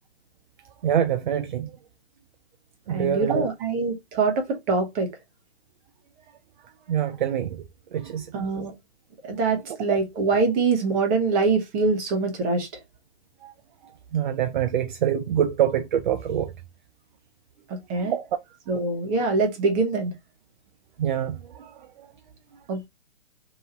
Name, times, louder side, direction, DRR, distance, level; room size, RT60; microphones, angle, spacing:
voice 1, 0.8-1.7 2.9-3.5 6.9-7.6 7.9-8.3 13.4-13.5 14.1-16.5 18.0-18.3 21.0-21.7, right 9 dB, 45° right, 0.5 m, -25 dB
voice 2, 2.9-5.1 8.3-8.7 9.2-12.7 17.9-18.1 18.7-20.1 22.7-22.9, right 3 dB, 25° right, 1.1 m, -24 dB
3.0 x 2.7 x 3.8 m
figure-of-eight pair, 125°, 33 cm